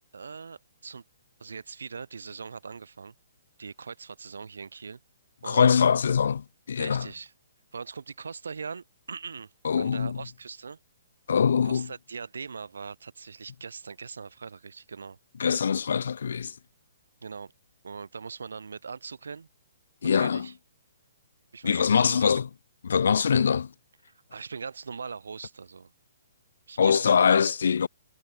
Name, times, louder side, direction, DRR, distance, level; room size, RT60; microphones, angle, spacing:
voice 1, 0.1-1.0 1.4-3.1 3.6-5.0 5.4-5.7 6.8-7.3 7.7-10.8 11.6-15.2 17.2-17.5 17.8-19.5 20.0-20.5 21.5-22.2 24.3-25.9 26.7-27.5, right 5 dB, 90° right, 6.4 m, -41 dB
voice 2, 5.4-7.1 9.6-10.2 11.3-11.9 15.4-16.6 20.0-20.5 21.6-22.5 22.8-23.7 26.8-27.9, left 6 dB, 75° left, 1.2 m, -23 dB
hypercardioid pair, 155°, 0 cm